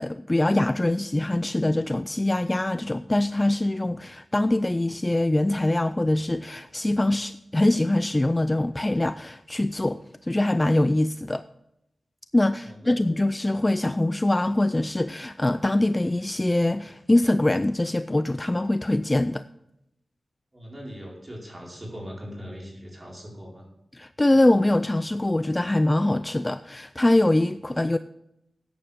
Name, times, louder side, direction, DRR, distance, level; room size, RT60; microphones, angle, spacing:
voice 1, 0.0-11.4 12.3-19.4 23.9-28.0, left 1 dB, 20° left, 0.4 m, -23 dB
voice 2, 12.6-13.0 20.5-23.6, equal, 20° right, 4.7 m, -40 dB
14.0 x 9.9 x 3.5 m
wide cardioid pair, 105°, 0 cm